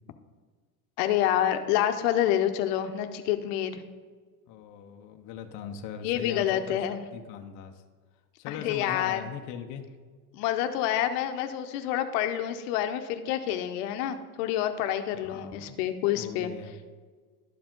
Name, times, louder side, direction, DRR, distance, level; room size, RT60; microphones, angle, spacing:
voice 1, 1.0-3.8 6.0-7.0 8.5-9.2 10.3-16.5, left 11 dB, 65° left, 8 dB, 0.8 m, -28 dB
voice 2, 4.5-6.8 7.1-7.7 8.4-9.9 15.2-15.8 16.1-16.7, left 8 dB, 40° left, 4 dB, 0.6 m, -40 dB
11.5 x 4.7 x 3.7 m, 1.5 s
supercardioid pair, 145°, 50 cm